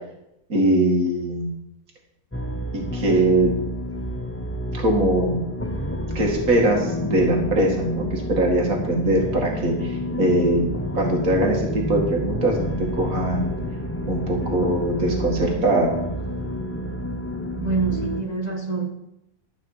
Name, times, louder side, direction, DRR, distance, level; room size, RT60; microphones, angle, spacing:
voice 1, 0.5-1.5 2.7-3.5 4.7-5.4 6.1-10.7 10.9-13.5 14.1-15.9, right 1 dB, 65° right, 0 dB, 2.7 m, -21 dB
sound 1, 2.3-18.2, left 1 dB, 10° left, 0.6 m, -29 dB
voice 2, 17.6-18.9, right 4 dB, 30° right, 0 dB, 1.3 m, -25 dB
12.5 x 6.1 x 7.4 m, 0.85 s
omnidirectional pair, 1.6 m